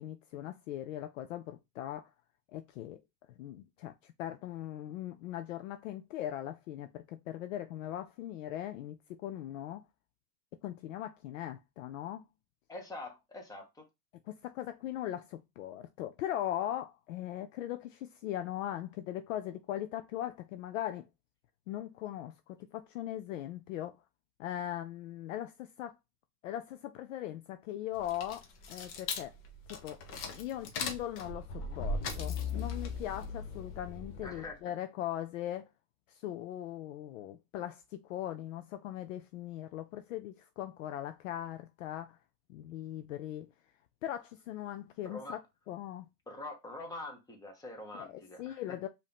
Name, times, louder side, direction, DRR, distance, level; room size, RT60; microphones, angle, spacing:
voice 1, 0.0-2.1 2.5-3.0 3.4-9.8 10.6-12.2 14.3-21.1 21.7-24.0 24.4-26.0 26.4-29.3 29.7-30.0 30.3-35.7 36.1-42.2 42.5-43.5 44.0-45.4 45.7-46.1 47.9-48.9, left 12 dB, 55° left, 0.5 m, -40 dB
voice 2, 12.7-13.8 31.6-31.9 34.2-34.6 45.0-45.4 46.3-48.6, left 2 dB, 10° left, 1.2 m, -44 dB
sound 1, 28.0-34.5, left 4 dB, 30° left, 0.8 m, -38 dB
5.2 x 2.8 x 3.4 m
hypercardioid pair, 130°, 48 cm